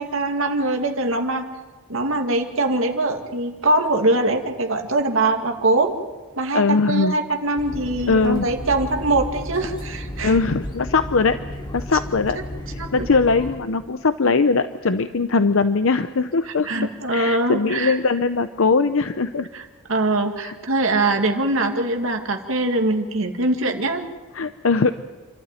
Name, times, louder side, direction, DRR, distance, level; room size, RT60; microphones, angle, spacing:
voice 1, 0.0-1.5 1.9-6.0 6.4-10.4 12.8-13.1 16.6-18.0 19.5-19.6 19.9-24.0, right 2 dB, 60° right, 4 dB, 2.2 m, -22 dB
voice 2, 6.5-7.1 8.1-8.5 10.2-11.4 11.7-12.4 12.7-19.5 20.4-20.5 24.3-24.9, left 4 dB, 60° left, 11 dB, 0.7 m, -20 dB
sound 1, 7.6-13.6, left 1 dB, 20° left, 2.8 m, -33 dB
28.5 x 12.5 x 9.1 m, 1.4 s
head